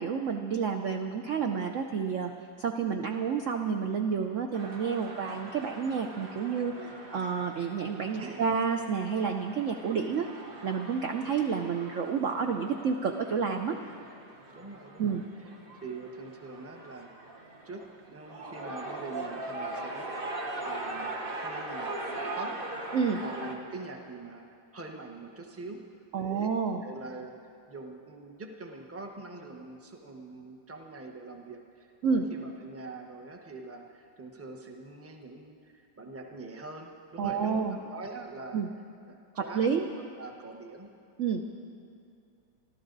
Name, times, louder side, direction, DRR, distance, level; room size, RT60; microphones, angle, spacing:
voice 1, 0.0-2.3 2.6-6.8 7.1-10.3 10.6-13.8 15.0-15.2 22.9-23.2 26.1-26.8 32.0-32.3 37.2-37.8 38.5-38.7 39.4-39.8 41.2-41.4, right 6 dB, 70° right, 4 dB, 0.7 m, -29 dB
sound 1, 4.5-23.5, right 2 dB, 35° right, 1.0 m, -41 dB
voice 2, 14.5-15.5 15.8-17.3 17.6-20.2 20.6-22.6 23.2-24.5 24.7-25.8 26.1-26.5 26.8-27.4 27.7-38.6 39.1-39.7 39.9-40.9, right 3 dB, 10° right, 2 dB, 0.7 m, -44 dB
26.5 x 13.0 x 4.0 m, 2.5 s
omnidirectional pair, 2.2 m